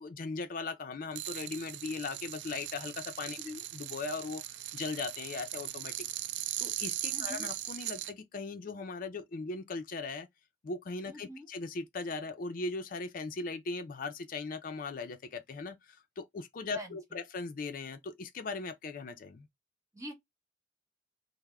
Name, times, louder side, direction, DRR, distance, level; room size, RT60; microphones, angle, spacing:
voice 1, 0.0-3.4 3.7-5.9 6.6-10.3 10.6-19.5, left 3 dB, 50° left, 0.4 m, -39 dB
sound 1, 1.1-8.1, right 13 dB, 75° right, 0.3 m, -39 dB
voice 2, 7.1-7.5 11.1-11.5 16.7-17.2 19.9-20.1, equal, 20° right, 1.0 m, -45 dB
3.3 x 2.0 x 3.4 m
head